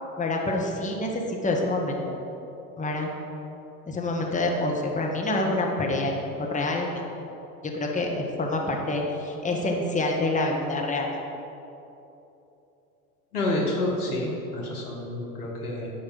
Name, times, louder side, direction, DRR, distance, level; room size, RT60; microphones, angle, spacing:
voice 1, 0.2-2.0 2.8-3.1 3.9-6.1 6.5-7.0 7.6-11.1, left 2 dB, 15° left, 0 dB, 1.6 m, -27 dB
voice 2, 13.3-15.9, left 1 dB, 90° left, -2 dB, 1.9 m, -29 dB
9.9 x 5.2 x 7.6 m, 2.9 s
hypercardioid pair, 75°, 44 cm